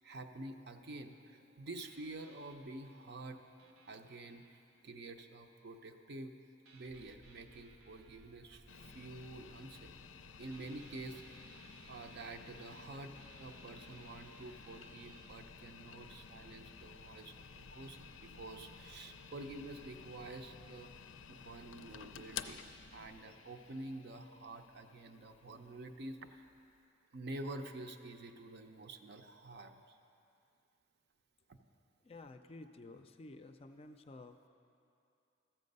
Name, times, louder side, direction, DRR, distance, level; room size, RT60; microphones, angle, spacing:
voice 1, 0.0-6.3 6.7-10.0 10.4-11.4 11.9-13.1 13.4-26.4 27.1-30.0 31.5-31.6, right 2 dB, 60° right, 6 dB, 0.6 m, -48 dB
sound 1, 1.8-5.6 6.7-10.2 10.5-15.2, right 4 dB, 80° right, 0.9 m, -64 dB
sound 2, 6.8-23.2, equal, 20° right, 0.6 m, -63 dB
sound 3, 8.7-26.8, left 7 dB, 90° left, 0.5 m, -53 dB
voice 2, 32.0-34.5, left 2 dB, 30° left, 8 dB, 0.4 m, -52 dB
13.5 x 7.5 x 5.3 m, 2.6 s
head